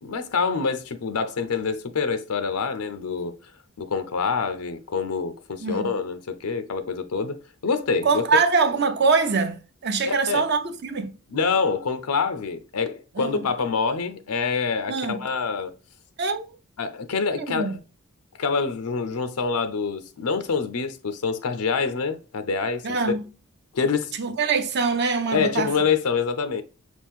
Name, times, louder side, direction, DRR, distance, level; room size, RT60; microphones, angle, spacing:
voice 1, 0.0-3.3 3.8-7.4 7.6-8.2 10.1-10.4 11.3-15.7 16.8-17.8 18.4-23.0 23.7-24.1 25.3-26.6, left 5 dB, 90° left, 0.6 m, -26 dB
voice 2, 5.6-5.9 8.0-11.1 13.2-13.4 14.9-15.2 16.2-16.5 17.3-17.8 22.8-23.3 24.2-25.7, right 4 dB, 50° right, 0.6 m, -24 dB
6.0 x 2.4 x 3.6 m
head